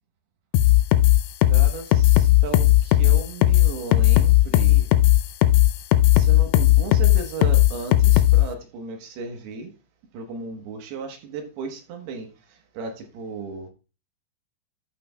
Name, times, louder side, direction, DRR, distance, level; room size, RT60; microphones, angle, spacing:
sound 1, 0.5-8.4, left 15 dB, 80° left, 2.5 m, -16 dB
voice 1, 1.5-4.9 6.1-9.7 10.1-13.7, right 4 dB, 70° right, 2.9 m, -35 dB
13.0 x 5.9 x 2.2 m
omnidirectional pair, 5.1 m